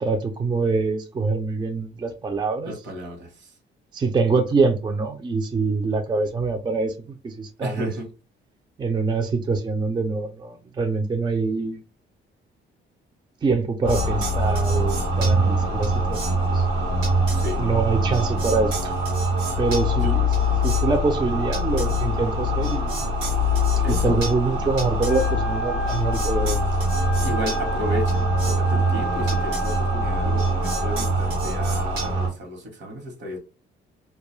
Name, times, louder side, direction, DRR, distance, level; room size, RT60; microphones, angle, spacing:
voice 1, 0.0-2.7 3.9-6.9 7.2-7.9 8.8-11.8 13.4-16.3 16.5-16.7 17.6-18.9 19.6-20.3 20.6-22.9 23.9-26.6, right 4 dB, 20° right, 0.4 m, -24 dB
voice 2, 2.6-3.5 7.6-8.1 17.3-17.6 20.0-20.2 23.8-24.2 27.2-33.4, left 1 dB, 65° right, 1.0 m, -33 dB
sound 1, 13.8-32.3, equal, 90° right, 1.0 m, -23 dB
Wind instrument woodwind instrument, 25.0-31.2, equal, 45° left, 0.5 m, -33 dB
2.2 x 2.2 x 3.0 m
cardioid pair, 90°, 20 cm